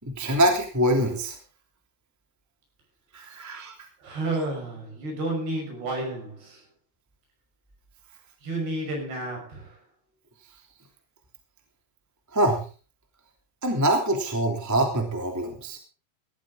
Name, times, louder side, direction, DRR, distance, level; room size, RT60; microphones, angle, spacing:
voice 1, 0.0-1.4 3.1-3.7 12.3-12.6 13.6-15.8, right 1 dB, 5° right, 1.8 m, -24 dB
voice 2, 4.0-6.6 8.4-9.8, right 2 dB, 55° right, 7.9 m, -31 dB
18.0 x 13.5 x 3.8 m
omnidirectional pair, 5.6 m